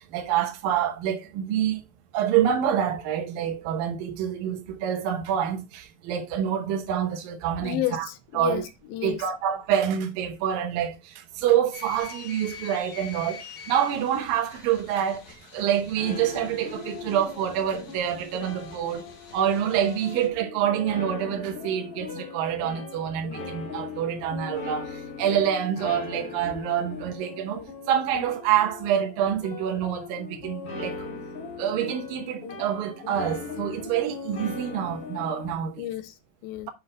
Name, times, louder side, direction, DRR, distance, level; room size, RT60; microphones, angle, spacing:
voice 1, 0.1-1.8 2.1-8.1 8.4-8.6 9.0-15.2 15.5-19.1 19.3-31.0 31.6-35.8, right 9 dB, 75° right, 2.6 m, -27 dB
voice 2, 7.6-9.2 35.8-36.7, left 14 dB, 85° left, 2.6 m, -32 dB
sound 1, 11.7-20.3, left 7 dB, 60° left, 1.1 m, -46 dB
sound 2, 16.0-35.5, left 4 dB, 45° left, 2.5 m, -39 dB
7.8 x 4.2 x 3.8 m
omnidirectional pair, 4.3 m